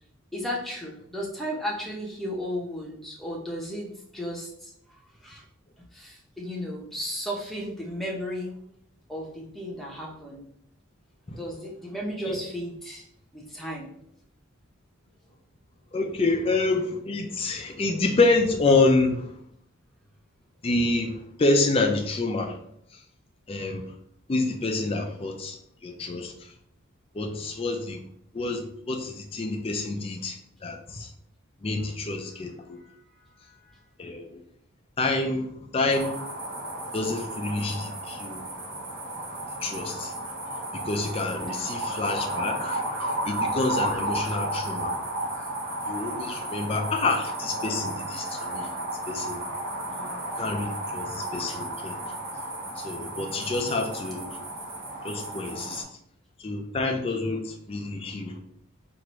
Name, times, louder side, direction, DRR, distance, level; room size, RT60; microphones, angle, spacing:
voice 1, 0.3-4.7 5.2-5.4 5.9-8.6 9.1-10.5 11.4-13.1 13.3-13.9 32.8-33.0 33.4-33.8 41.4-41.7 49.9-50.2, equal, ahead, -3 dB, 0.8 m, -35 dB
voice 2, 15.9-19.3 20.6-22.6 23.5-23.8 24.3-25.6 25.8-26.3 27.1-28.0 28.3-30.4 30.6-31.1 31.6-32.8 34.0-34.4 35.0-35.5 35.7-36.2 36.9-38.4 39.6-40.1 40.7-42.8 43.3-45.0 45.8-48.7 49.1-49.4 50.4-52.0 52.8-54.3 55.0-55.8 56.4-58.4, left 3 dB, 25° left, 3 dB, 0.4 m, -27 dB
sound 1, 35.9-55.8, right 1 dB, 60° right, 1.1 m, -33 dB
4.5 x 2.6 x 3.0 m, 0.69 s
head